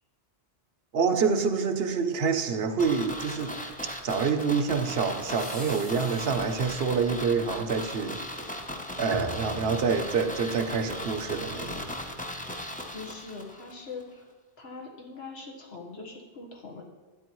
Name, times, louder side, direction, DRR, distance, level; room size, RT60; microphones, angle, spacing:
voice 1, 0.9-3.5 4.0-8.2 9.0-11.8, right 5 dB, 65° right, 8 dB, 0.9 m, -27 dB
sound 1, 2.8-13.7 14.0-14.1, left 1 dB, 10° left, 0.6 m, -37 dB
sound 2, 4.6-6.8, left 1 dB, 35° left, 2.4 m, -47 dB
Bowed string instrument, 9.1-12.6, right 1 dB, 40° right, 0.7 m, -42 dB
voice 2, 12.9-14.2 14.6-16.8, left 4 dB, 65° left, 0 dB, 1.6 m, -42 dB
12.0 x 9.5 x 3.1 m, 1.3 s
omnidirectional pair, 1.1 m